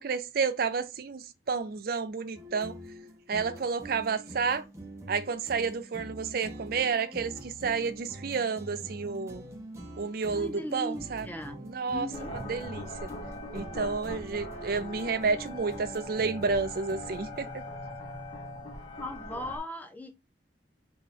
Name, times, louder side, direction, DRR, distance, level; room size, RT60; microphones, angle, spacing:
voice 1, 0.0-2.7 3.3-4.6 5.1-9.4 10.0-11.3 11.6-12.1 12.5-13.1 13.5-17.6, right 5 dB, 55° right, 0.5 m, -30 dB
sound 1, 2.3-17.4, right 1 dB, 15° right, 0.8 m, -45 dB
voice 2, 10.3-12.4 19.0-20.1, left 1 dB, 10° left, 0.4 m, -38 dB
sound 2, 12.1-19.6, left 1 dB, 25° left, 1.0 m, -41 dB
3.0 x 2.9 x 3.8 m
head